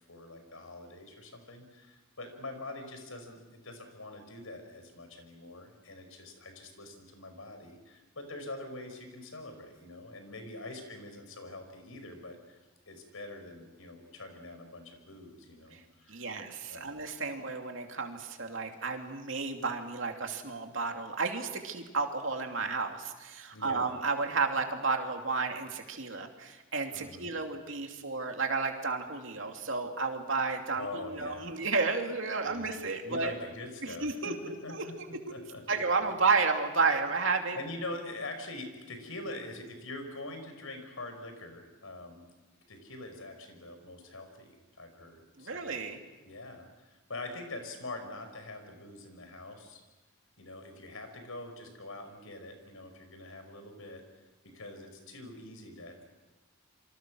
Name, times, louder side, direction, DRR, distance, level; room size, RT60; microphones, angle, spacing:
voice 1, 0.1-12.6 12.9-16.3 16.7-16.9 23.5-23.9 26.9-27.3 30.7-31.6 32.4-34.3 34.6-34.9 35.3-35.6 37.5-42.2 42.7-45.7 46.2-49.8 50.4-54.0 54.4-56.0, left 2 dB, 90° left, 6 dB, 5.3 m, -44 dB
voice 2, 16.1-33.3 33.8-34.8 35.3-35.4 35.7-37.6 45.4-46.0, right 4 dB, 65° right, 3 dB, 2.8 m, -32 dB
28.0 x 25.0 x 6.3 m, 1.2 s
head